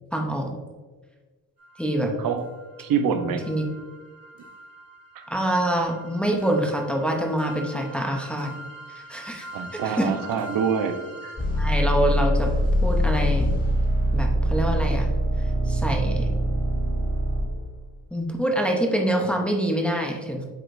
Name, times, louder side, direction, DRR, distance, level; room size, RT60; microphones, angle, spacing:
voice 1, 0.1-0.5 1.8-2.1 3.3-3.6 5.3-8.6 8.9-9.5 9.8-10.1 11.6-12.5 12.8-13.5 14.1-15.1 15.7-16.3 18.1-20.5, right 1 dB, 5° left, 1 dB, 0.6 m, -25 dB
sound 1, 1.6-1.7 2.4-2.5 2.8-2.9 3.4-17.8, equal, 25° left, 1.8 m, -26 dB
voice 2, 2.8-3.4 5.1-5.3 9.5-11.4, right 6 dB, 80° right, 8 dB, 0.7 m, -26 dB
7.8 x 4.9 x 2.5 m, 1.3 s
wide cardioid pair, 160°, 34 cm